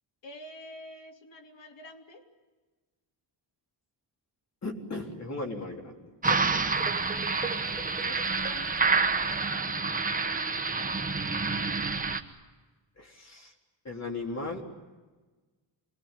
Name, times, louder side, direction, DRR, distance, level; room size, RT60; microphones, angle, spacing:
voice 1, 0.2-2.2 8.0-9.0, left 1 dB, 65° left, 3 dB, 3.2 m, -47 dB
voice 2, 4.6-6.3 13.0-13.5 13.8-14.7, left 2 dB, 35° left, 2 dB, 3.7 m, -37 dB
sound 1, 6.2-12.2, right 4 dB, 15° right, 1.3 m, -28 dB
26.5 x 20.0 x 9.9 m, 1.3 s
wide cardioid pair, 145°, 47 cm